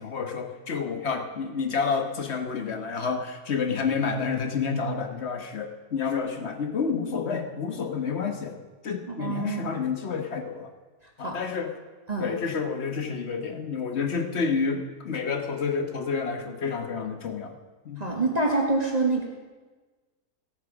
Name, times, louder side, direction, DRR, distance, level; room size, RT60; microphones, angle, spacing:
voice 1, 0.0-8.6 8.8-10.7 11.2-11.7 12.2-17.6 17.8-18.1, left 5 dB, 45° left, 5 dB, 1.3 m, -29 dB
voice 2, 9.2-9.7 11.2-11.4 12.1-12.3 18.0-19.2, right 3 dB, 25° right, -2 dB, 1.7 m, -26 dB
16.0 x 8.7 x 6.1 m, 1.3 s
omnidirectional pair, 1.7 m